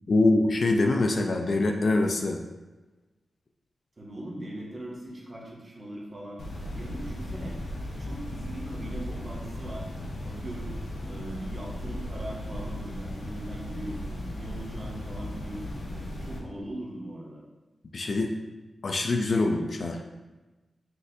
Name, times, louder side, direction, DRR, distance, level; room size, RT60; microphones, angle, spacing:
voice 1, 0.1-2.4 17.9-18.3 18.8-20.0, left 2 dB, 50° left, 3 dB, 0.3 m, -24 dB
voice 2, 4.0-6.4 6.7-7.6 8.0-9.8 10.2-10.7 11.1-17.4, right 1 dB, 30° right, -3 dB, 0.9 m, -40 dB
sound 1, 6.4-16.4, left 1 dB, 75° left, 0.7 m, -36 dB
6.0 x 2.6 x 2.6 m, 1.1 s
wide cardioid pair, 155°, 0 cm